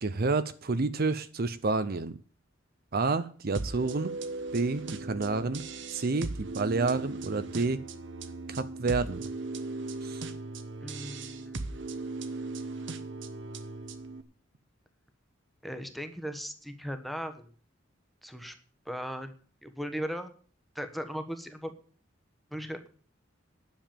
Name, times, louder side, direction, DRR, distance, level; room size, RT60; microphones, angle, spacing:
voice 1, 0.0-2.2 2.9-4.1 4.5-5.6 5.9-7.8 8.5-9.3 10.0-10.2, right 3 dB, 50° right, 13 dB, 0.6 m, -29 dB
sound 1, 3.5-14.2, right 3 dB, 65° right, 1.1 m, -38 dB
voice 2, 10.8-11.7 15.6-17.5 18.2-18.5 18.9-19.3 19.6-20.3 20.7-21.7 22.5-22.8, equal, ahead, 8 dB, 1.1 m, -37 dB
10.5 x 7.1 x 8.9 m, 0.43 s
head